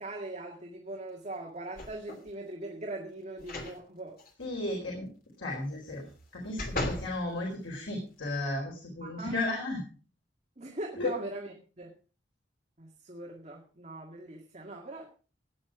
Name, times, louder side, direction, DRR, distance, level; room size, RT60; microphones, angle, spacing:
voice 1, 0.0-4.2 9.0-9.4 10.6-11.9 12.8-15.1, right 2 dB, 35° right, 0 dB, 2.0 m, -41 dB
sound 1, 1.8-2.3 3.4-3.8 4.2-4.3 5.9-7.1 7.7-7.8, left 1 dB, 50° left, 2.8 m, -37 dB
voice 2, 4.4-5.1 5.4-6.0 6.3-9.8 10.9-11.1, left 2 dB, 85° left, -1 dB, 4.4 m, -34 dB
17.0 x 9.8 x 4.9 m, 0.38 s
head